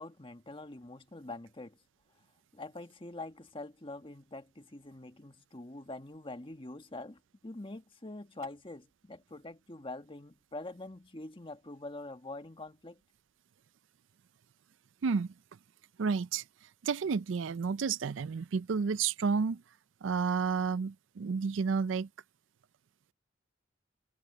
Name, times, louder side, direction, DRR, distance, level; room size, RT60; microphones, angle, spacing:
voice 1, 0.0-1.8 2.5-13.0, left 2 dB, 25° left, 1.5 m, -45 dB
voice 2, 15.0-15.3 16.0-19.6 20.0-22.1, right 5 dB, 70° right, 0.4 m, -31 dB
head